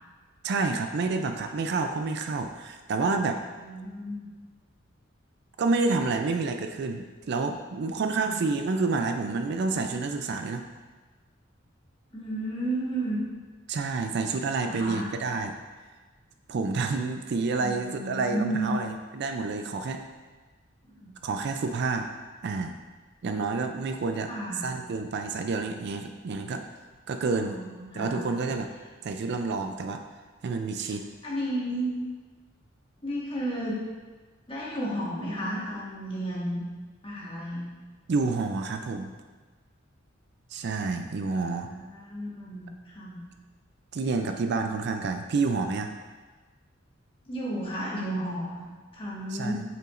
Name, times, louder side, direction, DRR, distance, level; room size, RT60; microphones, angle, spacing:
voice 1, 0.4-3.4 5.6-10.6 13.7-15.5 16.5-20.0 21.2-22.1 22.4-22.7 23.2-24.3 24.6-26.6 27.1-27.6 27.9-28.7 29.0-30.0 30.4-31.1 38.1-39.1 40.5-41.7 43.9-45.9 49.3-49.6, right 4 dB, 55° right, 6 dB, 0.4 m, -29 dB
voice 2, 3.6-4.3 8.1-8.3 12.1-13.2 14.6-15.1 17.6-18.7 20.8-21.1 24.3-24.7 27.3-28.2 31.2-31.9 33.0-33.8 34.5-36.6 37.0-37.7 41.3-43.3 47.3-49.6, right 1 dB, 25° left, -6 dB, 1.5 m, -33 dB
7.8 x 4.8 x 2.5 m, 1.3 s
head